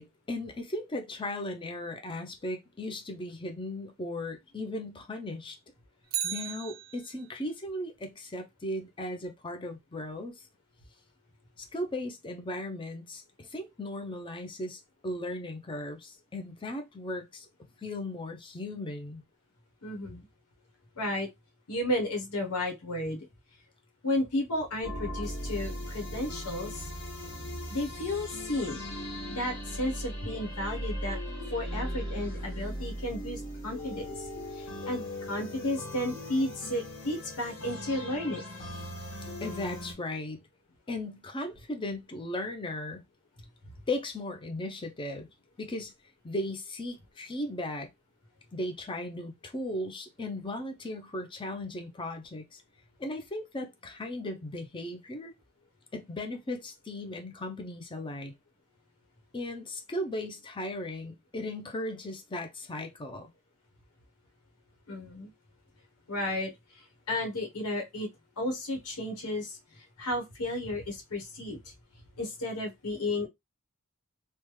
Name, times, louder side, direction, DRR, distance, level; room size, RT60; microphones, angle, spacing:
voice 1, 0.0-5.6 6.2-10.4 11.6-17.5 17.8-19.2 39.4-40.4 40.9-43.0 43.9-45.3 45.6-45.9 46.2-47.9 48.5-52.6 53.0-55.3 55.9-58.4 59.3-63.3, left 1 dB, 20° left, 0.5 m, -37 dB
Bicycle, 6.0-7.4 15.8-15.9, right 9 dB, 40° right, 0.4 m, -36 dB
voice 2, 19.8-20.2 21.0-21.3 21.7-23.2 24.0-26.8 27.7-28.9 29.3-31.2 31.5-34.1 34.5-35.0 35.3-38.4 64.9-65.3 66.1-66.5 67.1-68.1 68.4-69.6 70.0-71.6 72.2-73.3, left 1 dB, 90° left, 1.0 m, -33 dB
sound 1, 24.8-39.9, equal, 60° left, 1.6 m, -38 dB
3.2 x 2.1 x 3.0 m
head